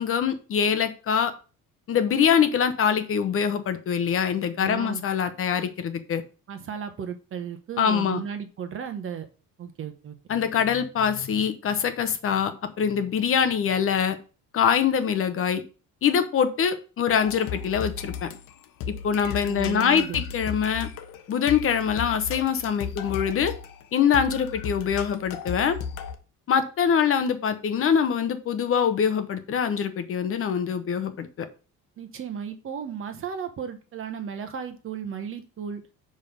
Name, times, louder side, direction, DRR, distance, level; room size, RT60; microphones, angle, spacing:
voice 1, 0.0-1.3 1.9-6.2 7.8-8.2 10.3-12.5 12.8-14.2 14.5-15.6 16.0-18.3 19.0-20.9 21.3-23.5 23.9-25.8 26.5-31.5, left 7 dB, 40° left, 10 dB, 0.9 m, -24 dB
voice 2, 4.6-5.0 6.5-9.3 9.6-10.1 19.4-20.2 32.0-35.8, right 7 dB, 40° right, 8 dB, 1.1 m, -35 dB
sound 1, 17.1-26.2, left 7 dB, 70° left, 1.0 m, -36 dB
6.3 x 5.3 x 5.3 m, 0.35 s
cardioid pair, 155°, 34 cm